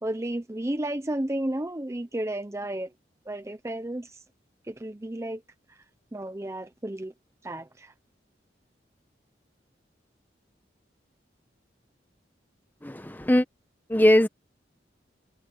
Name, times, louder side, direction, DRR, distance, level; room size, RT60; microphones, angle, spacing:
voice 1, 0.0-2.9 3.3-4.2 4.7-5.4 6.1-7.1 7.4-7.9, right 1 dB, 15° right, 0.6 m, -32 dB
voice 2, 12.8-13.4 13.9-14.3, left 1 dB, 10° left, 1.0 m, -20 dB
head